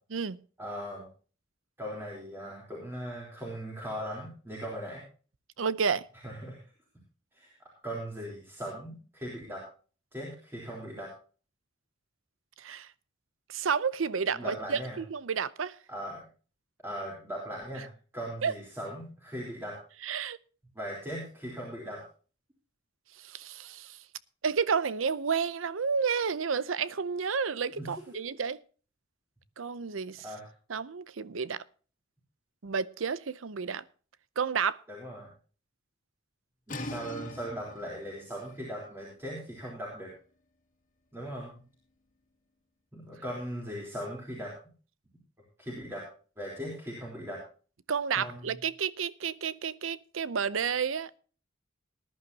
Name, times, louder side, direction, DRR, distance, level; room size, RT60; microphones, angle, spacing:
voice 1, 0.6-1.1 1.8-5.0 6.2-6.6 7.3-9.6 10.1-11.1 14.3-15.0 15.9-16.2 16.8-19.8 20.7-22.0 27.7-28.0 30.2-30.5 34.9-35.3 36.7-40.1 41.1-41.6 42.9-44.5 45.6-46.1 46.4-47.4 48.1-48.6, equal, 10° right, 3.6 m, -39 dB
voice 2, 5.6-6.0 12.6-12.9 13.5-15.7 18.4-18.5 20.0-20.4 23.2-24.0 24.4-28.6 29.6-30.2 30.7-31.6 32.6-33.8 34.4-34.8 47.9-51.2, right 6 dB, 80° right, 0.7 m, -31 dB
sound 1, 36.7-42.3, left 1 dB, 45° left, 2.2 m, -45 dB
19.5 x 11.0 x 2.8 m
head